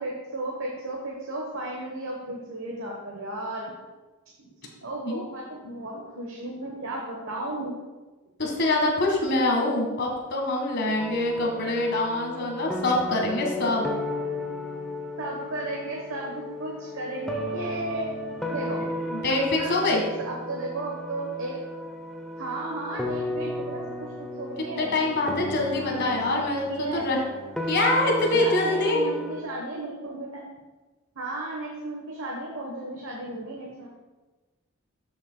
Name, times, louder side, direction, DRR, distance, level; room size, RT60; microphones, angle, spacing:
voice 1, 0.0-3.7 4.4-4.5 4.8-7.7 15.2-18.8 19.3-19.7 20.2-21.6 22.4-24.9 25.9-27.1 28.3-30.4 31.1-33.9, right 2 dB, 65° right, -2 dB, 1.1 m, -34 dB
voice 2, 8.4-13.9 19.1-19.4 19.7-20.0 24.8-27.2 27.7-29.0, left 2 dB, 50° left, 0 dB, 1.6 m, -25 dB
sound 1, 11.0-29.4, left 1 dB, 5° left, 0.6 m, -35 dB
12.5 x 6.4 x 2.2 m, 1.2 s
head